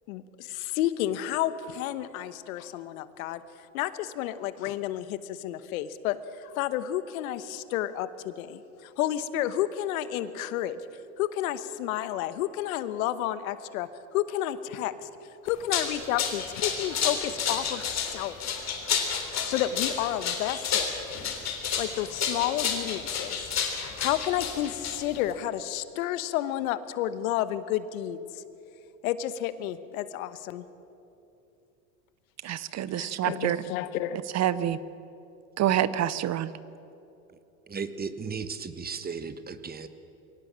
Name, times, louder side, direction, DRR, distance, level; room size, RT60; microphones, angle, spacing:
voice 1, 0.1-3.4 3.7-10.8 11.2-15.1 15.4-18.6 19.4-20.9 21.8-28.4 29.0-30.6 32.9-34.2, left 12 dB, 75° left, 14 dB, 1.2 m, -31 dB
sound 1, 15.5-25.3, left 7 dB, 40° left, 3.7 m, -30 dB
voice 2, 32.4-33.6 34.3-34.8 35.6-36.5, right 11 dB, 40° right, 17 dB, 0.7 m, -27 dB
voice 3, 37.7-39.9, right 5 dB, 20° right, 12 dB, 1.3 m, -35 dB
23.0 x 18.0 x 7.5 m, 2.8 s
hypercardioid pair, 95°, 42 cm